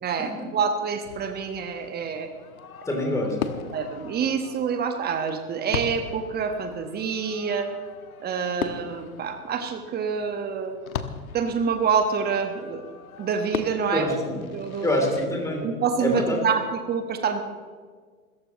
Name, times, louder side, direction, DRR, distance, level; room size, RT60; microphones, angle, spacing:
voice 1, 0.0-2.3 3.7-7.7 8.2-10.7 11.3-12.8 13.2-14.1 14.3-15.1 15.6-17.4, right 6 dB, 20° right, 7 dB, 1.4 m, -27 dB
Fireworks, 1.0-15.3, left 8 dB, 65° left, 1.3 m, -39 dB
voice 2, 2.8-3.4 13.9-14.3 14.8-15.7 16.0-16.4, left 1 dB, 5° left, 1 dB, 3.2 m, -25 dB
26.0 x 14.5 x 3.1 m, 1.5 s
figure-of-eight pair, 105°, 45 cm